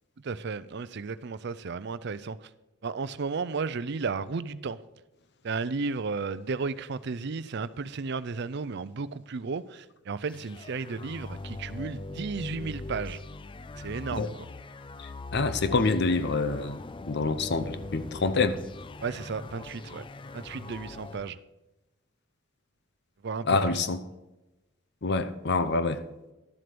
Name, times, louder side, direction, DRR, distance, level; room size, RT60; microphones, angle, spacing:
voice 1, 0.2-2.4 2.8-4.8 5.4-13.2 13.8-14.3 19.0-20.0 20.3-21.4 23.2-23.8, right 4 dB, 55° right, 0.5 m, -33 dB
sound 1, 10.3-21.3, left 2 dB, 25° left, 0.4 m, -41 dB
voice 2, 15.3-16.8 17.1-18.6 23.4-24.0 25.0-26.0, left 3 dB, 55° left, 0.7 m, -26 dB
12.0 x 7.7 x 5.1 m
head